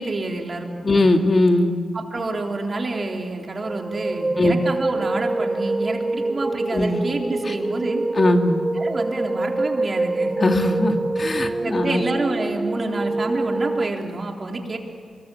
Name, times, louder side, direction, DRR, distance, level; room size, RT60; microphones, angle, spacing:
voice 1, 0.0-0.9 1.9-8.0 8.8-10.3 11.6-14.8, right 2 dB, 45° right, 2 dB, 3.6 m, -28 dB
voice 2, 0.8-1.8 4.4-4.6 6.7-7.0 7.5-7.6 8.1-8.6 10.4-12.0, left 2 dB, 45° left, 5 dB, 2.2 m, -20 dB
sound 1, 3.6-13.9, right 2 dB, 30° right, 0.8 m, -25 dB
24.5 x 21.0 x 8.6 m, 2.2 s
cardioid pair, 60°, 0 cm